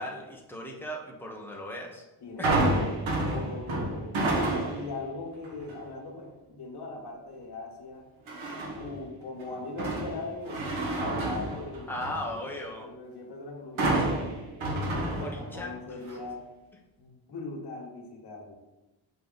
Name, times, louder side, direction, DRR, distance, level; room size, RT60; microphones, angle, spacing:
voice 1, 0.0-2.0 2.4-2.7 11.9-12.9 13.9-14.1 15.2-16.0, left 1 dB, 5° left, -1 dB, 0.9 m, -37 dB
voice 2, 2.2-4.1 4.6-8.1 8.8-14.3 14.9-16.4 17.0-18.6, left 3 dB, 55° left, -1 dB, 1.6 m, -40 dB
sound 1, 2.4-5.0 5.4-5.8 8.3-8.9 9.4-12.3 13.8-15.7 16.1-16.2, right 2 dB, 80° right, 1.6 m, -29 dB
6.4 x 5.3 x 4.1 m, 1.0 s
wide cardioid pair, 180°, 47 cm